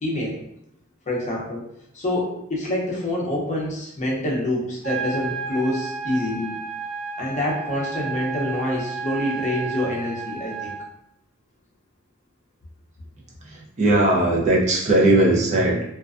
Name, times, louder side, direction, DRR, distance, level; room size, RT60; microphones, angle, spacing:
voice 1, 0.0-0.4 1.1-1.6 1.9-6.5 7.2-10.7, left 1 dB, 35° left, -4 dB, 0.6 m, -26 dB
sound 1, 4.8-10.8, right 5 dB, 85° right, 0.6 m, -32 dB
voice 2, 13.4-15.8, right 1 dB, 35° right, -3 dB, 0.5 m, -19 dB
2.3 x 2.2 x 2.4 m, 0.76 s
head